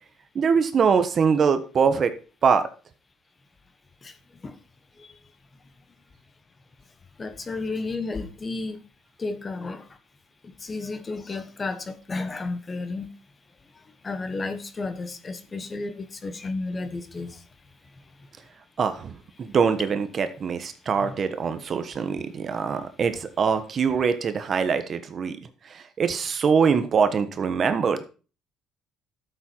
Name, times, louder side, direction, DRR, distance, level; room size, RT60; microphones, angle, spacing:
voice 1, 0.3-2.1 2.4-2.7 18.8-25.4 25.7-28.0, right 6 dB, 40° right, 1.3 m, -23 dB
voice 2, 7.2-8.8 9.2-9.9 10.4-13.1 14.0-17.4 21.0-21.2, left 3 dB, 25° left, 1.4 m, -32 dB
13.0 x 7.5 x 4.6 m
cardioid pair, 120°, 0 cm